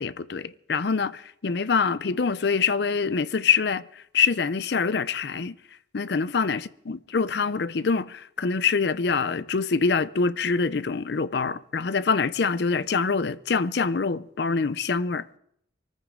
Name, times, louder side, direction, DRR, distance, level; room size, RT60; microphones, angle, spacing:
voice 1, 0.0-3.8 4.1-5.5 5.9-6.6 6.9-15.4, left 5 dB, 60° left, 0.5 m, -25 dB
24.0 x 14.5 x 3.7 m
head